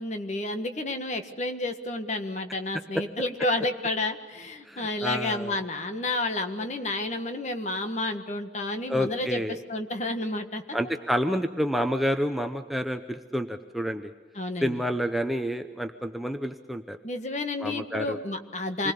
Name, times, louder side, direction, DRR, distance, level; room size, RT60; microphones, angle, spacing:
voice 1, 0.0-10.6 14.4-14.8 17.0-18.9, left 2 dB, 40° left, 6 dB, 1.6 m, -30 dB
voice 2, 4.7-5.6 8.9-9.6 10.7-14.1 14.6-17.0 17.6-18.2 18.8-18.9, equal, ahead, 5 dB, 0.8 m, -29 dB
27.0 x 20.5 x 6.9 m, 1.4 s
head